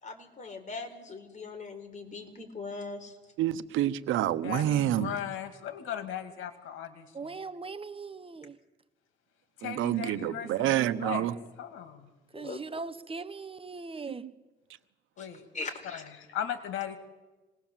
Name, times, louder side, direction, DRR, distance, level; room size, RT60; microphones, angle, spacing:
voice 1, 0.0-3.1 12.3-12.6 15.2-15.3 15.5-16.0, left 3 dB, 40° left, 5 dB, 4.2 m, -40 dB
voice 2, 3.4-5.1 9.6-11.3, right 12 dB, 90° right, 12 dB, 1.1 m, -28 dB
voice 3, 4.4-7.3 9.6-11.3 11.6-12.1 15.2-15.4 15.8-17.0, left 10 dB, 90° left, 8 dB, 2.5 m, -37 dB
voice 4, 7.1-8.6 12.3-14.2, right 4 dB, 25° right, 11 dB, 1.0 m, -40 dB
25.5 x 20.0 x 7.5 m, 1.2 s
cardioid pair, 90°, 20 cm